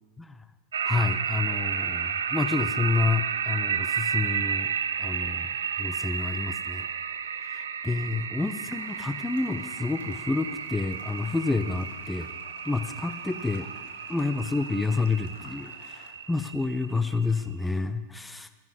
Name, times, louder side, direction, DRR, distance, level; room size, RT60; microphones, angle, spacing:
sound 1, 0.7-17.5, right 7 dB, 65° right, 0.6 m, -32 dB
voice 1, 0.8-4.7 5.0-5.5 5.8-6.9 7.5-12.3 12.6-13.7 14.1-16.0 16.3-18.5, left 3 dB, 5° left, 10 dB, 0.8 m, -29 dB
sound 2, 8.8-16.1, left 6 dB, 55° left, 1.6 m, -51 dB
13.5 x 11.0 x 5.4 m, 1.3 s
figure-of-eight pair, 90°, 0 cm